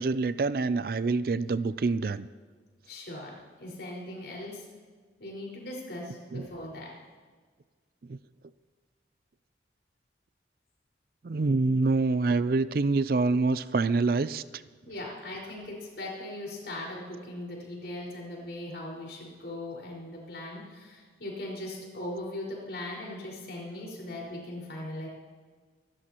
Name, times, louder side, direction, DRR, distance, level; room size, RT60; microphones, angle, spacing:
voice 1, 0.0-2.3 6.3-6.5 8.0-8.2 11.2-14.6, right 3 dB, 55° right, 15 dB, 0.4 m, -26 dB
voice 2, 2.9-4.7 5.2-6.9 14.8-25.1, left 1 dB, 75° left, -3 dB, 5.0 m, -39 dB
26.5 x 12.5 x 3.0 m, 1.5 s
head